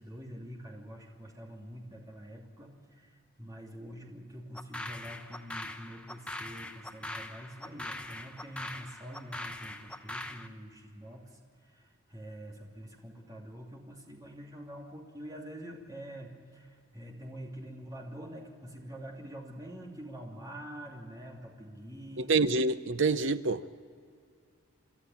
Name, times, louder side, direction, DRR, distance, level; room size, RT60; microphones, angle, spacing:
voice 1, 0.0-22.3, equal, 15° right, 3.0 m, -46 dB
sound 1, 4.5-10.5, left 1 dB, 5° left, 0.8 m, -42 dB
voice 2, 22.2-23.7, right 3 dB, 55° right, 0.7 m, -27 dB
29.0 x 12.5 x 8.6 m
head